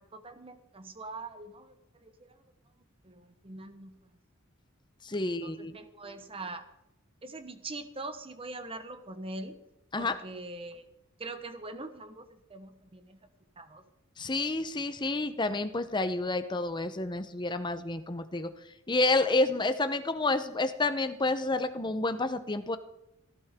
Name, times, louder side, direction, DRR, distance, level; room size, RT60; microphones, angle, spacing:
voice 1, 0.1-1.7 2.0-2.4 3.0-4.0 5.4-6.6 7.2-9.6 10.0-10.9 11.2-13.2 13.6-13.8, right 2 dB, 25° right, 8 dB, 1.1 m, -43 dB
voice 2, 5.0-5.8 9.9-10.1 14.2-18.5 18.9-22.8, left 2 dB, 20° left, 10 dB, 0.8 m, -29 dB
18.0 x 14.0 x 3.7 m, 0.85 s
head